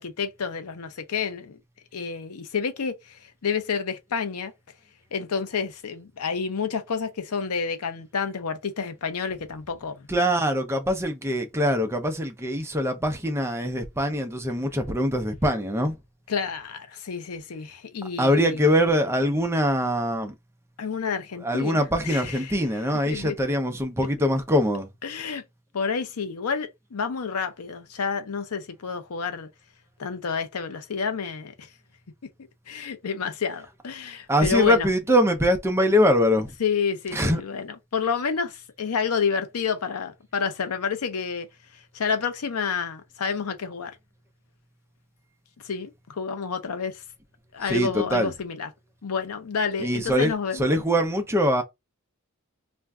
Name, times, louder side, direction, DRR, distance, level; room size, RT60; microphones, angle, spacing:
voice 1, 0.0-1.6 1.9-4.5 5.1-10.1 16.3-18.7 20.8-23.4 25.0-25.4 25.7-29.5 30.0-31.7 32.7-34.9 36.6-44.0 45.6-47.0 47.5-48.7 49.0-50.8, left 6 dB, 90° left, 0.6 m, -29 dB
voice 2, 10.1-15.9 18.2-20.3 21.3-24.9 34.3-36.5 37.1-37.4 47.7-48.3 49.8-51.6, equal, 10° right, 0.6 m, -23 dB
2.5 x 2.2 x 3.4 m
head